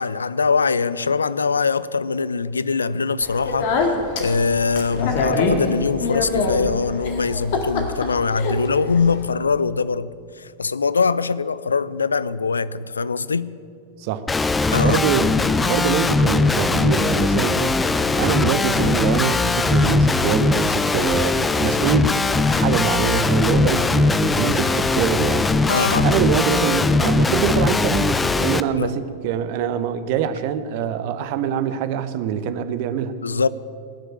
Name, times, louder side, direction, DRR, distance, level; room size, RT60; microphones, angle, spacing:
voice 1, 0.0-3.7 4.2-10.1 10.4-13.5 14.7-15.0 25.7-26.1 28.8-29.0 33.2-33.5, left 5 dB, 75° left, 18 dB, 0.4 m, -22 dB
Speech, 3.2-9.3, left 3 dB, 50° left, 1.9 m, -25 dB
Guitar, 14.3-28.6, left 3 dB, 10° left, 0.5 m, -20 dB
voice 2, 14.8-15.3 15.7-17.8 18.1-22.1 22.5-25.7 26.0-33.2, right 8 dB, 50° right, 12 dB, 0.8 m, -24 dB
18.5 x 6.6 x 9.6 m, 2.4 s
figure-of-eight pair, 90°, 0 cm